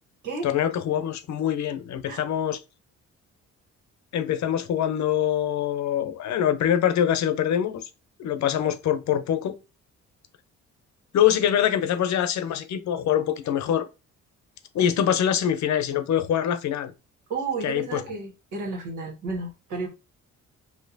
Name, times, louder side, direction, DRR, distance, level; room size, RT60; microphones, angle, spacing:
voice 1, 0.4-2.6 4.1-7.8 8.2-9.6 11.1-13.9 14.7-16.9 17.6-18.0, left 10 dB, 70° left, 0.7 m, -24 dB
voice 2, 17.3-19.9, right 4 dB, 85° right, 1.7 m, -32 dB
4.3 x 2.8 x 2.7 m
cardioid pair, 90°, 30 cm